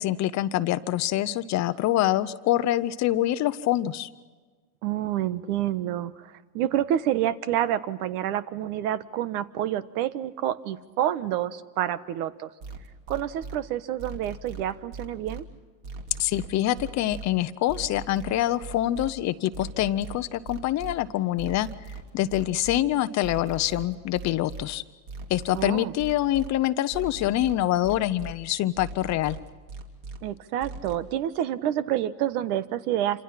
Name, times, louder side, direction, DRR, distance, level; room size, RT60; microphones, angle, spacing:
voice 1, 0.0-4.1 16.2-21.7 22.1-24.8 25.3-29.4, left 14 dB, 35° left, 13 dB, 0.8 m, -25 dB
voice 2, 4.8-12.5 13.1-15.4 25.5-25.9 30.2-33.2, right 11 dB, 65° right, 14 dB, 1.5 m, -28 dB
sound 1, 12.6-13.6 14.0-15.4 15.8-17.3 17.7-19.1 19.5-20.9 21.4-22.8 23.2-24.6 25.1-26.5 26.9-28.3 28.8-30.2 30.6-31.0, right 4 dB, 40° right, 3.2 m, -39 dB
28.0 x 26.5 x 5.9 m, 1.4 s
supercardioid pair, 135°, 48 cm